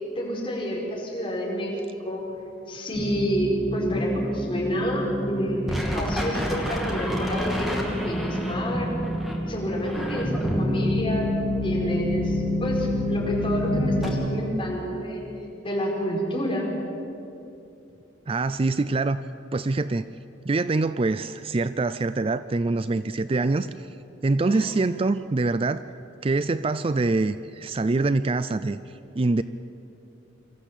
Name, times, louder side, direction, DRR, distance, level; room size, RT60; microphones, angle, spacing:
voice 1, 0.2-1.8 2.0-2.2 2.7-8.9 9.5-15.2 15.6-16.7 24.5-24.7, equal, 30° left, -3 dB, 5.2 m, -29 dB
sound 1, 2.9-14.1, left 1 dB, ahead, 2.7 m, -27 dB
voice 2, 18.3-19.2 19.5-20.0 20.5-23.9 24.2-25.8 26.2-28.8 29.1-29.4, right 3 dB, 30° right, 13 dB, 0.4 m, -24 dB
25.0 x 14.0 x 8.3 m, 2.8 s
head